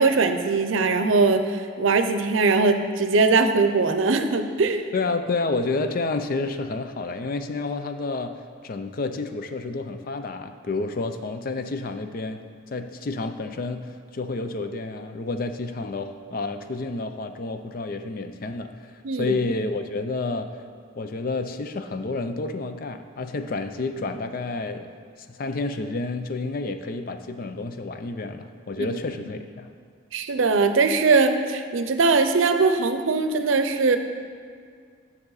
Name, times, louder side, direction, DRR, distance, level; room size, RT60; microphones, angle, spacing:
voice 1, 0.0-4.8 19.0-19.4 28.8-28.9 30.1-34.0, right 4 dB, 85° right, 8 dB, 0.6 m, -21 dB
voice 2, 4.9-8.3 8.6-12.4 12.7-20.5 21.0-24.9 25.3-29.7, left 3 dB, 45° left, 8 dB, 0.5 m, -30 dB
9.7 x 6.7 x 4.0 m, 2.1 s
head